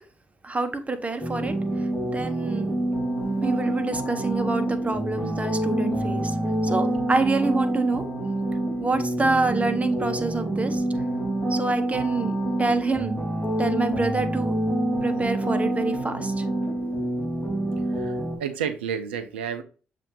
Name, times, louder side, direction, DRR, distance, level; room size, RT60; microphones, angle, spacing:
voice 1, 0.4-2.7 3.4-6.4 6.6-8.0 8.8-10.8 11.5-13.2 13.6-14.5 15.0-16.4, right 3 dB, 25° right, 8 dB, 0.9 m, -27 dB
sound 1, 1.2-18.4, right 1 dB, 15° left, 1.7 m, -27 dB
voice 2, 18.0-19.6, right 7 dB, 90° right, 9 dB, 0.5 m, -31 dB
6.8 x 2.5 x 3.0 m, 0.36 s
hypercardioid pair, 45°, 6 cm